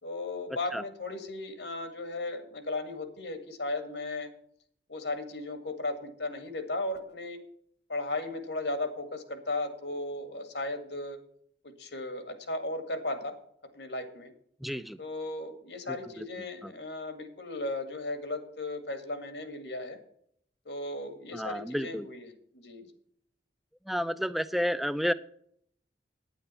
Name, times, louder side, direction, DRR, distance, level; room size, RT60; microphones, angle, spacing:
voice 1, 0.0-4.3 4.9-7.4 7.9-11.2 11.6-13.3 13.7-14.3 15.0-20.0 20.7-22.9, left 2 dB, 80° left, 7 dB, 1.9 m, -36 dB
voice 2, 14.6-15.0 15.9-16.2 16.6-16.7 21.3-22.1 23.9-25.1, equal, ahead, 12 dB, 0.4 m, -31 dB
9.6 x 9.1 x 5.5 m, 0.66 s
head